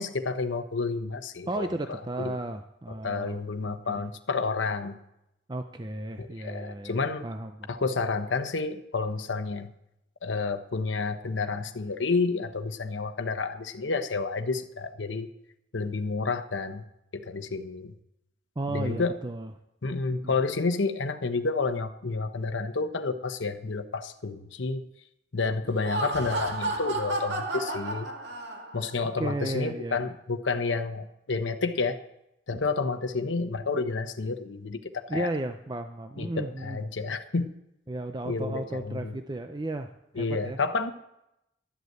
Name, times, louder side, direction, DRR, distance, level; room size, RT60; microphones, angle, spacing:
voice 1, 0.0-2.4 3.0-5.0 6.2-7.3 7.7-9.7 10.2-15.3 15.7-16.8 17.1-17.9 18.7-19.2 19.8-24.8 25.3-28.1 28.7-32.0 32.5-35.3 36.2-37.5 38.2-39.2 40.2-40.9, left 4 dB, 85° left, 8 dB, 0.9 m, -30 dB
voice 2, 1.5-3.4 3.8-4.1 5.5-7.7 18.6-19.5 20.1-20.4 29.2-30.1 35.1-36.8 37.9-40.6, right 1 dB, 25° right, 7 dB, 0.5 m, -34 dB
Laughter, 25.7-28.9, right 2 dB, 70° right, 2.1 m, -32 dB
12.5 x 8.1 x 7.8 m, 0.84 s
head